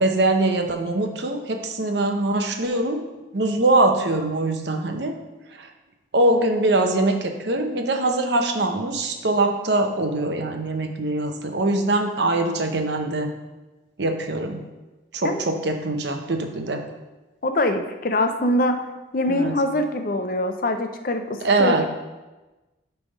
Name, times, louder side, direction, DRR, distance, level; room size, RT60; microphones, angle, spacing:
voice 1, 0.0-3.1 3.3-5.1 5.5-5.7 6.1-13.3 14.0-14.6 15.1-16.8 19.3-19.6 21.4-21.9, right 2 dB, 65° right, 5 dB, 0.8 m, -23 dB
voice 2, 17.4-18.8 19.1-21.9, left 1 dB, 50° left, 7 dB, 0.5 m, -23 dB
9.1 x 3.4 x 5.3 m, 1.1 s
head